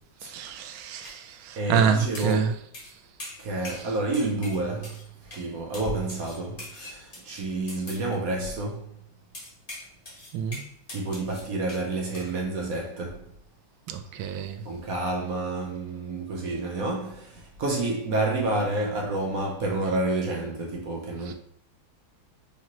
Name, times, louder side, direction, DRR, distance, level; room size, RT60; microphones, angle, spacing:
voice 1, 0.2-2.5 10.3-10.6 13.9-14.6 21.3-21.4, right 7 dB, 85° right, 1.4 m, -27 dB
sound 1, 1.0-1.1 2.1-2.4 2.7-2.9 3.2-3.9 4.1-5.0 5.3-5.5 5.7-8.0 9.3-11.9 12.1-12.3, left 1 dB, 30° left, 1.1 m, -42 dB
voice 2, 1.6-2.5 3.4-8.9 10.9-13.2 14.6-21.3, right 2 dB, 65° right, 0.9 m, -29 dB
5.0 x 2.9 x 2.9 m
omnidirectional pair, 2.2 m